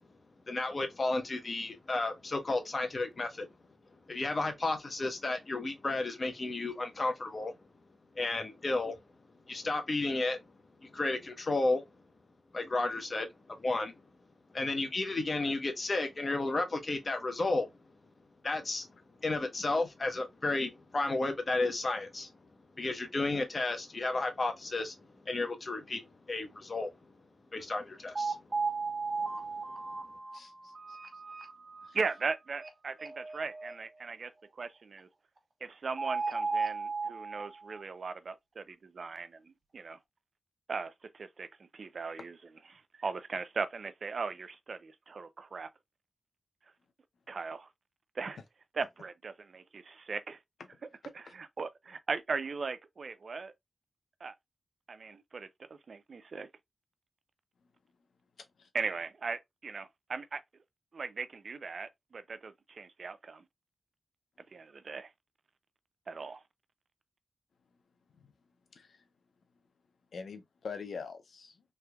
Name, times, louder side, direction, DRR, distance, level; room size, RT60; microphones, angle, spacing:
voice 1, 0.5-3.5 4.1-7.5 8.2-9.0 9.5-10.4 10.8-11.8 12.5-13.9 14.5-17.7 18.4-18.9 19.2-22.3 22.8-24.9 25.3-26.9 27.5-28.4 29.2-29.3, left 2 dB, 45° left, 0.9 m, -32 dB
sound 1, 27.7-27.8 28.1-31.9 32.2-32.3 32.6-32.7 33.0-33.7 36.0-37.8, right 4 dB, 40° right, 1.0 m, -35 dB
voice 2, 30.3-31.0 31.8-32.0 58.6-58.7 68.2-68.3 68.7-69.0 70.1-71.6, left 5 dB, 80° left, 0.6 m, -44 dB
voice 3, 31.9-35.1 35.6-40.0 40.7-42.4 42.7-45.7 47.3-47.7 48.2-48.4 48.7-50.4 51.1-53.5 54.2-54.3 54.9-56.5 58.7-60.4 60.9-63.4 64.5-65.1 66.1-66.4, right 4 dB, 60° right, 0.5 m, -38 dB
3.4 x 3.2 x 2.2 m
cardioid pair, 70°, 0 cm